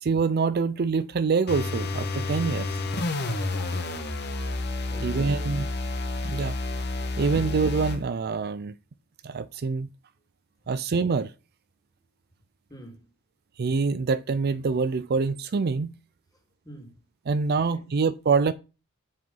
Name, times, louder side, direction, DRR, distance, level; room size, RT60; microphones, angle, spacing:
voice 1, 0.0-2.7 5.0-5.6 6.3-6.5 7.2-8.7 9.2-9.9 10.7-11.3 13.6-15.9 17.3-18.5, right 4 dB, 50° right, 0.4 m, -25 dB
sound 1, 1.5-8.0, left 2 dB, 50° left, 1.3 m, -30 dB
voice 2, 4.9-5.4 12.7-13.1 16.3-17.0 17.7-17.9, equal, 20° left, 2.5 m, -46 dB
7.7 x 5.8 x 5.3 m
head